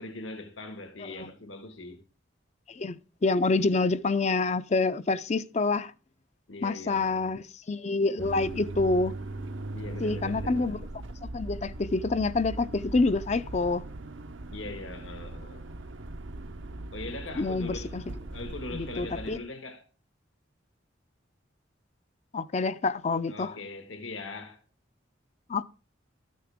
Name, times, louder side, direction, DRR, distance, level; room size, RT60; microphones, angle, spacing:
voice 1, 0.0-2.0 6.5-7.3 9.7-10.8 14.5-15.7 16.9-19.8 23.3-24.6, left 2 dB, 85° left, 1.7 m, -41 dB
voice 2, 2.7-5.9 6.6-9.1 10.0-10.9 11.2-13.8 17.4-18.0 18.7-19.4 22.3-23.5 25.5-25.6, left 3 dB, 35° left, 0.4 m, -27 dB
sound 1, 8.2-19.4, right 2 dB, 80° right, 0.8 m, -39 dB
13.5 x 9.4 x 3.6 m
head